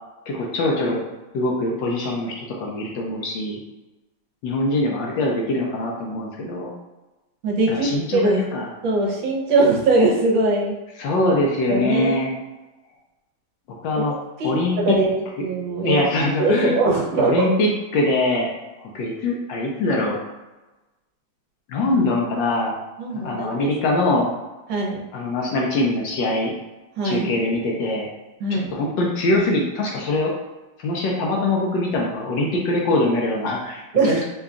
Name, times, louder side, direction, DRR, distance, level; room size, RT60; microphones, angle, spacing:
voice 1, 0.3-1.0 1.3-3.6 4.4-6.7 7.7-8.7 11.0-12.3 13.8-14.1 14.4-15.0 15.8-16.7 17.2-18.5 18.8-20.2 21.7-22.8 23.1-24.3 25.1-26.5 27.0-28.1 28.5-30.3 30.8-34.2, left 2 dB, 70° left, -1 dB, 1.2 m, -23 dB
voice 2, 7.4-7.9 8.1-8.4 8.8-10.8 11.7-12.2 13.9-14.0 14.4-14.5 14.8-16.0 16.4-17.5 23.0-23.7 24.7-25.1 27.0-27.3 28.4-28.7 33.9-34.2, right 2 dB, 70° right, -2 dB, 1.4 m, -21 dB
3.8 x 2.3 x 3.5 m, 1.1 s
omnidirectional pair, 2.3 m